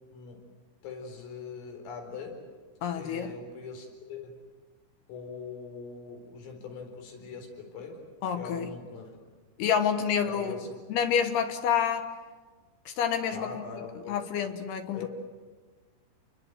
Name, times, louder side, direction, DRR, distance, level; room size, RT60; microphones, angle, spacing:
voice 1, 0.8-2.5 2.9-4.3 5.1-8.0 8.4-9.2 10.3-10.7 13.3-14.2 14.9-15.1, left 5 dB, 85° left, 3 dB, 6.9 m, -42 dB
voice 2, 2.8-3.3 8.2-8.7 9.6-10.6 10.9-12.1 12.9-13.6 14.1-15.1, left 8 dB, 65° left, 7 dB, 2.9 m, -28 dB
29.5 x 22.0 x 8.0 m, 1.4 s
omnidirectional pair, 5.7 m